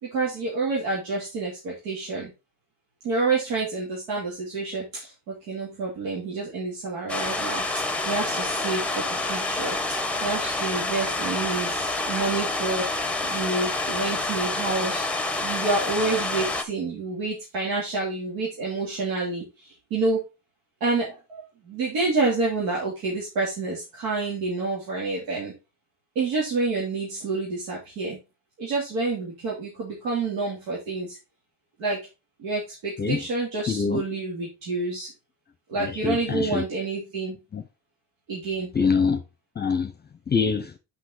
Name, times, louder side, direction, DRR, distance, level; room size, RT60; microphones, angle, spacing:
voice 1, 0.0-2.3 3.0-12.8 13.2-20.2 20.8-25.5 26.1-28.2 28.6-31.2 31.8-32.0 32.4-35.1 35.7-37.4 38.3-38.7, right 3 dB, 85° right, 2.9 m, -28 dB
sound 1, 7.1-16.6, left 2 dB, 5° left, 1.0 m, -28 dB
voice 2, 33.7-34.0 35.8-36.6 37.5-37.6 38.7-39.2 39.6-39.9 40.3-40.7, left 5 dB, 20° left, 0.9 m, -24 dB
6.0 x 5.7 x 4.2 m
cardioid pair, 95°, 46 cm